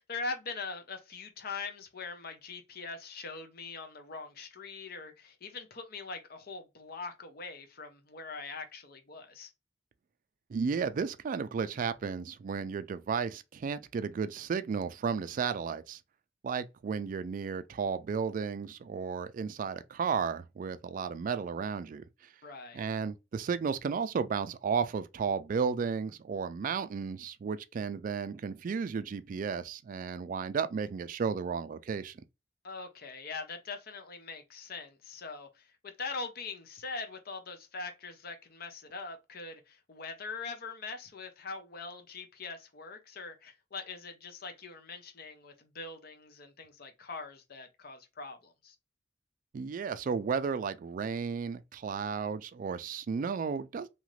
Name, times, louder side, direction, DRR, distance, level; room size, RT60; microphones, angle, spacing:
voice 1, 0.0-9.5 22.4-22.9 32.6-48.8, left 4 dB, 55° left, 0.6 m, -42 dB
voice 2, 10.5-16.0 16.4-22.0 22.7-32.2 49.5-53.9, right 6 dB, 50° right, 0.3 m, -33 dB
2.8 x 2.5 x 3.0 m
head